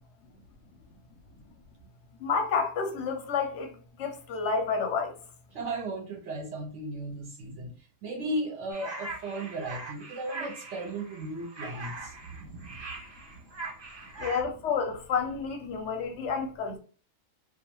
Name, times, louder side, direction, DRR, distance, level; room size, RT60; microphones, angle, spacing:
voice 1, 2.2-3.7 4.0-5.1 14.2-16.8, left 5 dB, 65° left, 0.7 m, -29 dB
voice 2, 5.5-12.8, right 1 dB, 65° right, 0.8 m, -36 dB
sound 1, 8.7-14.4, right 3 dB, 45° right, 0.3 m, -41 dB
2.3 x 2.3 x 3.0 m
omnidirectional pair, 1.6 m